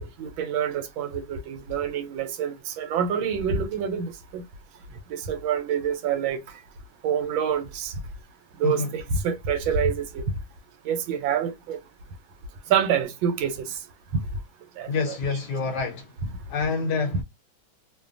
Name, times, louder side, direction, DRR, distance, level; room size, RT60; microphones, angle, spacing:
voice 1, 0.0-4.4 5.1-6.4 7.0-7.9 8.6-10.2 10.8-11.8 12.7-13.8 14.8-15.1, right 7 dB, 85° right, 1.4 m, -27 dB
voice 2, 8.6-8.9 14.9-16.1 16.5-17.2, left 4 dB, 70° left, 1.1 m, -27 dB
3.1 x 2.1 x 2.4 m
omnidirectional pair, 2.2 m